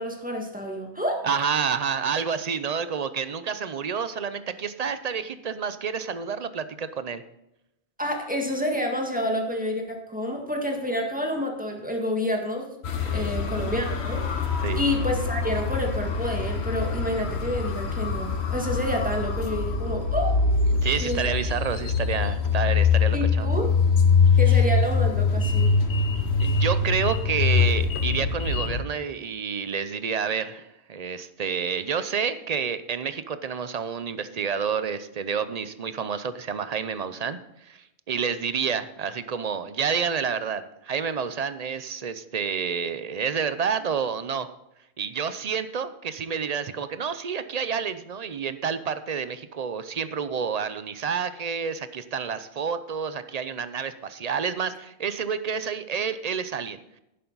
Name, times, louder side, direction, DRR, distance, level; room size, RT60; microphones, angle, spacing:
voice 1, 0.0-1.3 8.0-12.7 13.1-14.2 14.8-20.4 21.0-21.3 23.1-23.7 24.4-25.7, equal, 10° right, 1 dB, 1.9 m, -29 dB
voice 2, 1.2-7.2 13.1-13.3 14.6-14.8 20.7-23.5 24.5-24.6 26.4-44.5 45.0-57.0, right 6 dB, 45° right, 12 dB, 0.7 m, -29 dB
sound 1, 12.8-28.8, left 5 dB, 75° left, 1.3 m, -24 dB
11.0 x 10.5 x 4.0 m, 0.86 s
omnidirectional pair, 1.1 m